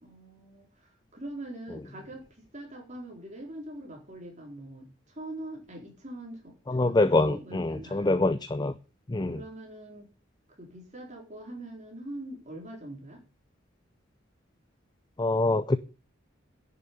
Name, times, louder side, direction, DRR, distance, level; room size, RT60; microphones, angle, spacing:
voice 1, 0.0-8.1 9.3-10.1 10.6-13.2, right 1 dB, 35° right, 4.1 m, -43 dB
voice 2, 6.7-8.7 9.1-9.4 15.2-15.8, left 2 dB, 20° left, 0.5 m, -25 dB
11.0 x 6.9 x 9.1 m
head